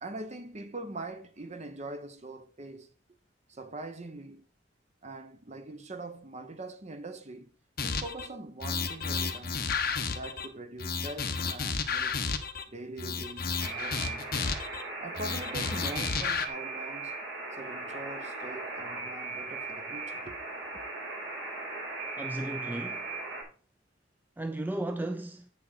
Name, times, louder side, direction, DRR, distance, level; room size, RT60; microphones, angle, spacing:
voice 1, 0.0-2.9 3.5-4.4 5.0-7.5 7.8-12.2 12.7-14.5 15.0-17.2 17.5-20.4, right 2 dB, 35° right, 1.0 m, -43 dB
sound 1, 7.8-8.3 8.6-10.5 10.8-12.6 13.0-14.8 15.2-16.5, left 5 dB, 55° left, 1.1 m, -32 dB
Alarm, 13.6-23.4, right 3 dB, 65° right, 3.7 m, -38 dB
voice 2, 22.2-23.1 24.4-25.5, right 1 dB, 10° right, 0.4 m, -35 dB
8.6 x 6.6 x 4.1 m
head